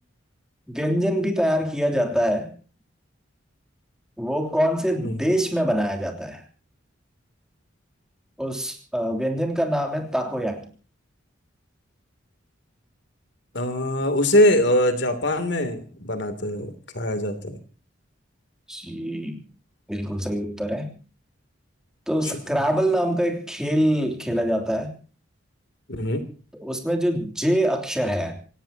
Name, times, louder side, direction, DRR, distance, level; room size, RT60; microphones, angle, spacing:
voice 1, 0.7-2.5 4.2-6.4 8.4-10.6 18.7-19.4 19.9-20.9 22.1-24.9 26.5-28.4, equal, 5° right, 3 dB, 3.1 m, -24 dB
voice 2, 13.5-17.6 25.9-26.2, left 1 dB, 55° left, 9 dB, 3.0 m, -22 dB
27.5 x 17.0 x 2.9 m, 0.38 s
head